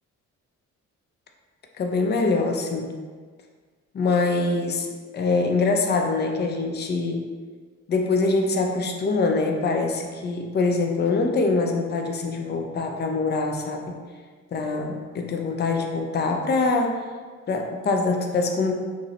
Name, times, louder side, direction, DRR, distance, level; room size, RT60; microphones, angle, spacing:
voice 1, 1.8-2.9 3.9-7.2 7.9-13.9 14.5-17.0 17.5-18.7, left 3 dB, 35° left, 3 dB, 0.5 m, -24 dB
5.2 x 2.0 x 2.8 m, 1.5 s
cardioid pair, 90°, 30 cm